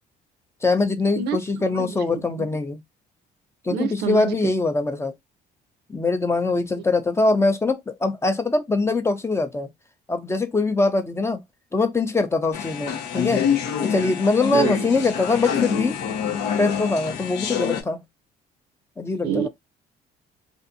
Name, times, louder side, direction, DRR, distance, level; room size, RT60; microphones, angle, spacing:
voice 1, 0.6-2.8 3.6-5.1 5.9-9.7 10.1-11.4 11.7-13.4 13.8-16.0 16.6-18.0 19.0-19.5, left 3 dB, 15° left, 0.5 m, -23 dB
voice 2, 1.7-2.5 3.7-4.4 14.5-14.9 19.2-19.5, right 8 dB, 75° right, 0.5 m, -27 dB
sound 1, 12.5-17.8, left 8 dB, 80° left, 0.7 m, -26 dB
2.5 x 2.5 x 2.5 m
cardioid pair, 110°, 17 cm